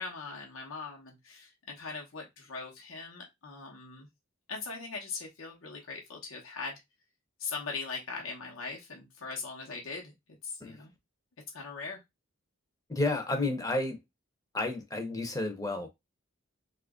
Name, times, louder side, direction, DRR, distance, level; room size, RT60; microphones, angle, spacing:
voice 1, 0.0-4.1 4.5-6.8 7.4-10.1 10.4-10.9 11.5-12.0, left 4 dB, 75° left, 0.9 m, -40 dB
voice 2, 12.9-14.0 14.5-15.9, left 2 dB, 15° left, 0.6 m, -31 dB
3.0 x 2.4 x 3.6 m
head